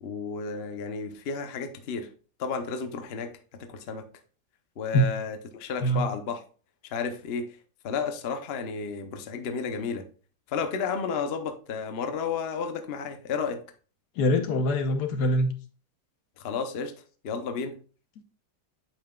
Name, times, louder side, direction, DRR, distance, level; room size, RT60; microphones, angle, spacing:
voice 1, 0.0-2.1 2.4-4.1 4.8-6.4 6.8-7.6 7.8-10.1 10.5-13.6 16.4-16.9 17.2-17.8, left 5 dB, 50° left, 0.8 m, -32 dB
voice 2, 14.2-15.5, equal, 70° left, 1.3 m, -23 dB
8.6 x 5.6 x 2.3 m
omnidirectional pair, 1.8 m